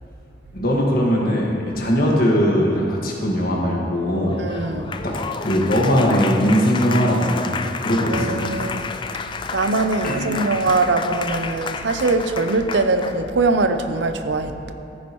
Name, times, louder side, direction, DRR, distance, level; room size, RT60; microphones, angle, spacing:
voice 1, 0.5-4.4 5.0-8.4 10.0-10.2, equal, 55° left, -3 dB, 1.8 m, -20 dB
Applause, 4.1-13.3, left 5 dB, 25° left, 0.3 m, -31 dB
voice 2, 4.4-5.0 8.1-8.9 9.5-14.7, right 3 dB, 90° right, 8 dB, 0.6 m, -22 dB
14.5 x 9.4 x 3.1 m, 2.8 s
head